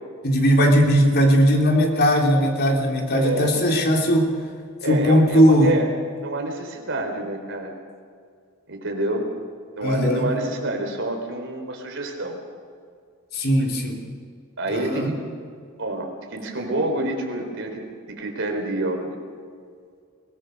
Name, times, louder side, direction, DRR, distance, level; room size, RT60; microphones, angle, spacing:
voice 1, 0.2-4.3 4.9-5.7 9.8-10.3 13.3-14.0 14.7-15.1, equal, 50° left, 1 dB, 3.5 m, -18 dB
voice 2, 3.1-3.7 4.8-5.9 6.2-7.7 8.7-9.3 9.7-12.4 14.6-15.1 15.8-17.8 18.1-19.2, right 1 dB, 60° right, 2 dB, 4.0 m, -27 dB
23.5 x 18.5 x 6.7 m, 2.2 s
head